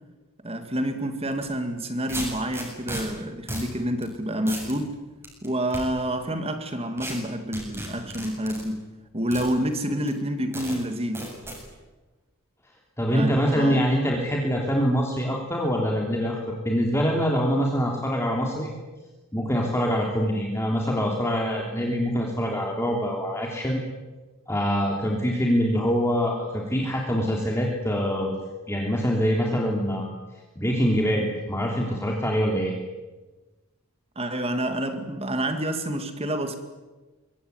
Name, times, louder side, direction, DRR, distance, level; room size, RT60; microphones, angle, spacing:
voice 1, 0.4-5.0 5.4-8.9 9.1-11.3 13.1-13.8 34.2-36.6, right 1 dB, 25° right, 2.3 m, -28 dB
sound 1, 1.3-1.5 2.1-3.0 3.5-3.7 4.0-4.1 4.5-4.7 5.2-5.8 7.0-7.1 7.5-8.6 9.3-9.5 10.1-10.2 10.5-10.8 11.1-11.6, right 1 dB, 10° right, 7.4 m, -34 dB
voice 2, 13.0-18.7 19.3-23.8 24.5-28.4 28.7-30.1 30.5-32.7, equal, 10° left, 3.4 m, -24 dB
24.0 x 24.0 x 9.6 m
head